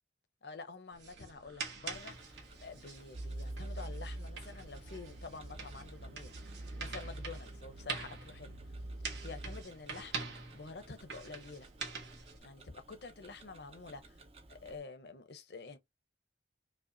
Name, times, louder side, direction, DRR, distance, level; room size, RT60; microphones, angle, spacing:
voice 1, 0.4-6.3 6.8-8.5 9.2-10.3 10.5-11.7 12.4-14.2 14.5-15.8, left 4 dB, 65° left, 0.8 m, -48 dB
sound 1, 0.9-12.4, right 5 dB, 70° right, 1.3 m, -46 dB
Tick-tock, 1.9-14.8, right 2 dB, 30° right, 0.6 m, -59 dB
sound 2, 3.1-9.6, right 1 dB, 90° right, 0.7 m, -45 dB
5.0 x 2.4 x 2.6 m
head